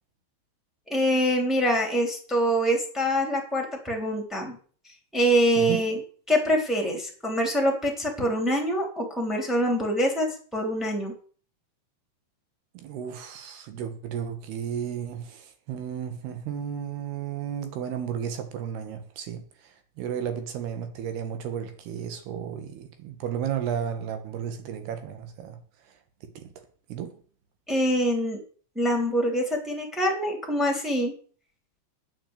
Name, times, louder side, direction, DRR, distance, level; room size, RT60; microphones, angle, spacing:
voice 1, 0.9-4.5 5.1-6.0 6.3-11.1 27.7-28.4 28.7-31.1, equal, ahead, 2.8 m, -25 dB
voice 2, 12.7-26.5 26.9-27.2, right 8 dB, 70° right, 3.3 m, -34 dB
9.3 x 8.8 x 8.3 m
omnidirectional pair, 5.1 m